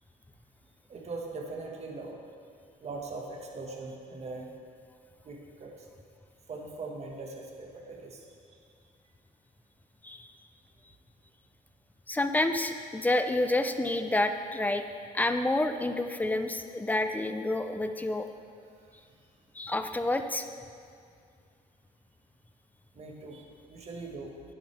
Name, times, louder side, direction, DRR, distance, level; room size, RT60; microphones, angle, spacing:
voice 1, 0.9-2.2 2.8-4.5 5.2-5.7 6.5-8.2 8.5-8.6 22.9-24.5, right 3 dB, 40° right, 0 dB, 1.6 m, -41 dB
voice 2, 12.1-14.8 15.1-18.3 19.6-20.5, left 2 dB, 10° left, 8 dB, 0.5 m, -29 dB
10.5 x 10.5 x 3.4 m, 2.2 s
cardioid pair, 110°, 17 cm